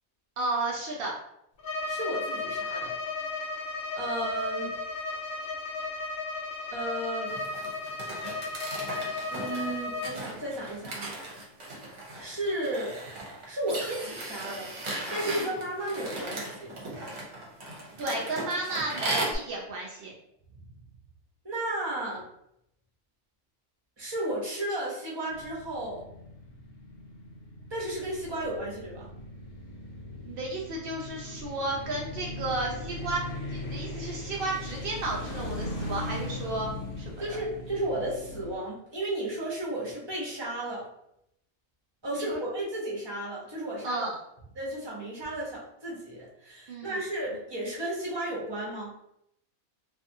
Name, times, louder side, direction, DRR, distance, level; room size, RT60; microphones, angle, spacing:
voice 1, 0.4-1.2 15.2-15.5 18.0-20.1 30.2-36.7 37.0-37.4 42.2-42.4 43.8-44.2 46.7-46.9, right 2 dB, 90° right, -2 dB, 0.5 m, -33 dB
Bowed string instrument, 1.6-10.2, left 3 dB, 85° left, 0.4 m, -34 dB
voice 2, 1.9-2.9 3.9-4.8 6.7-7.3 9.3-11.2 12.2-13.0 13.5-14.7 15.1-16.7 21.4-22.2 24.0-26.0 27.7-29.1 37.2-40.9 42.0-44.1 44.6-48.9, right 1 dB, 25° right, -5 dB, 0.7 m, -33 dB
sound 1, 7.3-19.4, right 2 dB, 60° right, 1.0 m, -37 dB
sound 2, 25.3-38.6, left 2 dB, 65° left, 1.0 m, -39 dB
2.6 x 2.4 x 2.6 m, 0.77 s
omnidirectional pair, 1.5 m